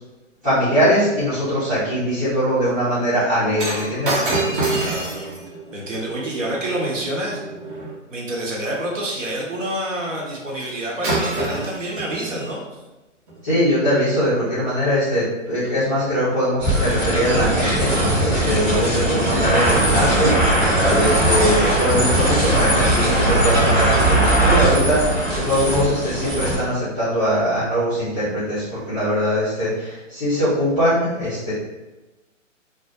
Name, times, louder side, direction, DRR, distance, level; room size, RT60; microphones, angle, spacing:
voice 1, 0.4-4.1 13.4-31.5, equal, 5° left, -19 dB, 0.4 m, -21 dB
Shatter, 3.6-8.0 10.6-10.8 11.0-12.5 13.3-13.4, right 2 dB, 40° right, 0.7 m, -27 dB
voice 2, 4.5-5.3 5.7-7.4 8.1-12.8, right 1 dB, 75° right, -3 dB, 0.9 m, -28 dB
sound 1, 16.6-26.6, right 1 dB, 20° right, 1.0 m, -19 dB
2.2 x 2.0 x 2.9 m, 1.1 s
figure-of-eight pair, 135°, 38 cm